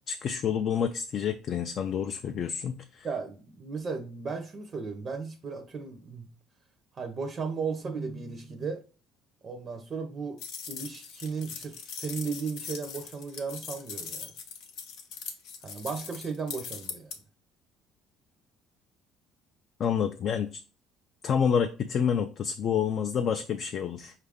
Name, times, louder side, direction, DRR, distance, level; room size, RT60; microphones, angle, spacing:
voice 1, 0.1-3.1 19.8-20.6 21.2-24.1, left 7 dB, 45° left, 0.3 m, -28 dB
voice 2, 3.0-6.3 6.9-8.8 9.4-10.4 10.7-14.3 15.6-17.1, right 5 dB, 30° right, 0.5 m, -35 dB
sound 1, 10.4-17.2, left 6 dB, 85° left, 0.8 m, -41 dB
5.4 x 2.4 x 3.4 m
cardioid pair, 140°, 0 cm